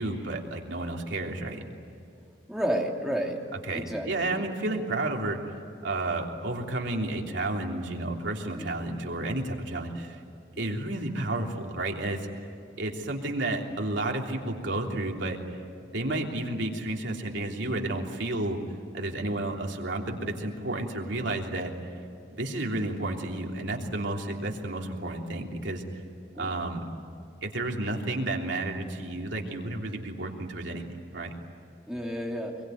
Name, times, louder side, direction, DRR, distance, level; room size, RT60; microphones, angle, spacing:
voice 1, 0.0-1.6 3.7-5.4 5.8-10.2 10.6-12.3 12.8-15.4 15.9-18.6 18.9-21.7 22.3-25.8 26.4-26.8 27.4-30.9 31.1-31.3, right 2 dB, 80° right, 1 dB, 3.3 m, -31 dB
voice 2, 2.5-3.4 3.7-4.4 8.5-8.7 10.5-10.7 16.0-16.2 26.4-26.5 31.9-32.5, equal, 5° right, -1 dB, 2.9 m, -31 dB
25.5 x 22.5 x 9.4 m, 2.5 s
head